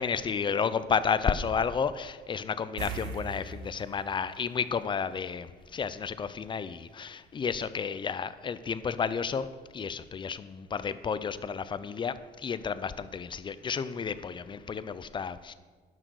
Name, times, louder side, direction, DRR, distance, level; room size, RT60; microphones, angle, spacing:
voice 1, 0.0-9.5 9.7-15.5, left 6 dB, 30° left, 14 dB, 0.5 m, -31 dB
sound 1, 2.8-5.6 5.9-6.0 8.9-9.0 9.4-9.5, right 4 dB, 90° right, 1.2 m, -41 dB
10.5 x 6.5 x 6.3 m, 1.4 s
cardioid pair, 110°, 17 cm